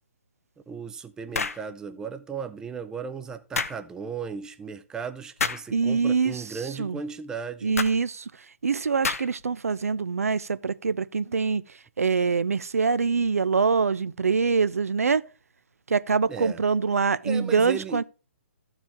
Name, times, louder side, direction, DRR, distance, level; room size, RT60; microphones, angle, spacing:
voice 1, 0.7-7.7 16.3-16.6 17.2-18.0, right 6 dB, 10° right, 0.4 m, -36 dB
sound 1, 1.3-1.7 3.6-3.8 5.4-5.7 7.8-8.0 9.0-9.4, left 5 dB, 80° left, 0.6 m, -28 dB
voice 2, 5.7-6.4 6.8-7.0 7.6-8.3 8.6-11.6 12.0-15.3 15.9-18.0, right 5 dB, 85° right, 0.4 m, -24 dB
13.5 x 4.9 x 3.6 m
hypercardioid pair, 135°, 8 cm